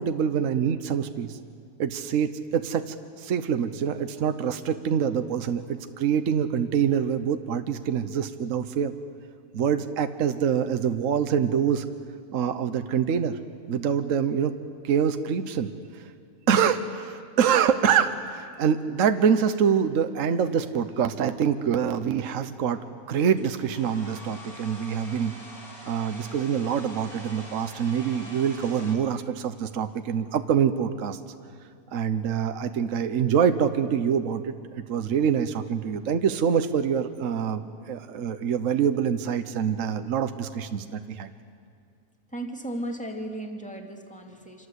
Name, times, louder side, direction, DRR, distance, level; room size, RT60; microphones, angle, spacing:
voice 1, 0.0-1.4 1.8-8.9 9.5-11.9 12.3-13.4 13.7-14.5 14.8-16.1 16.5-22.8 23.1-25.3 25.8-31.2 31.9-34.5 34.9-41.3, right 7 dB, 65° right, 9 dB, 1.3 m, -25 dB
Domestic sounds home sounds, 23.4-29.0, left 1 dB, 45° left, 5.2 m, -45 dB
voice 2, 42.3-44.7, right 1 dB, 5° left, 2 dB, 2.5 m, -35 dB
27.0 x 27.0 x 8.2 m, 2.2 s
omnidirectional pair, 1.5 m